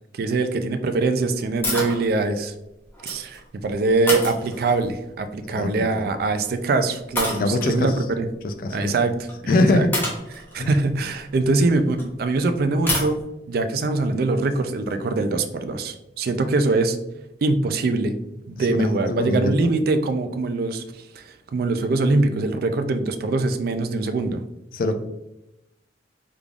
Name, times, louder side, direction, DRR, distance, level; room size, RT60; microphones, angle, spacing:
voice 1, 0.1-2.5 3.0-8.3 8.7-9.9 10.5-13.2 13.5-17.0 17.4-18.1 18.5-20.8 21.1-24.4, right 3 dB, 60° right, 9 dB, 0.3 m, -23 dB
sound 1, 1.6-2.0 2.9-3.4 4.1-5.0 6.2-6.5 7.2-7.8 9.3-9.4 9.9-12.0 12.9-13.1, left 1 dB, 15° left, 1.0 m, -28 dB
voice 2, 5.5-6.1 7.3-7.9 8.4-8.9 9.5-9.9 10.6-10.7 18.6-19.7 24.7-24.9, left 2 dB, 50° left, 7 dB, 0.4 m, -23 dB
3.6 x 3.4 x 2.3 m, 0.89 s
head